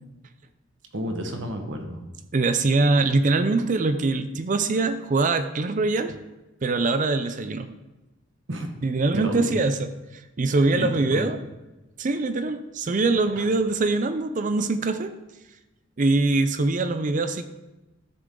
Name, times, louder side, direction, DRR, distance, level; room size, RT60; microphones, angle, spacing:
voice 1, 0.9-2.0 8.5-8.7 9.1-9.6 10.7-11.3 13.4-13.5, equal, 70° right, 4 dB, 1.4 m, -31 dB
voice 2, 2.3-6.2 6.6-7.7 8.8-11.4 12.0-15.1 16.0-17.4, right 3 dB, 40° right, 10 dB, 0.5 m, -23 dB
13.0 x 7.0 x 3.8 m, 1.1 s
head